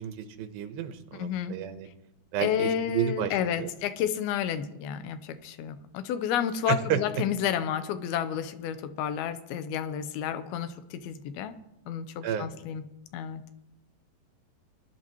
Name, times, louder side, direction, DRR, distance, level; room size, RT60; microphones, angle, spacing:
voice 1, 0.0-1.9 2.3-3.7 6.7-7.0 12.2-12.5, right 9 dB, 80° right, 8 dB, 2.8 m, -31 dB
voice 2, 1.2-1.6 2.4-11.6 11.9-12.8 13.1-13.4, left 9 dB, 85° left, 11 dB, 2.7 m, -31 dB
23.5 x 11.0 x 3.0 m, 0.89 s
omnidirectional pair, 4.3 m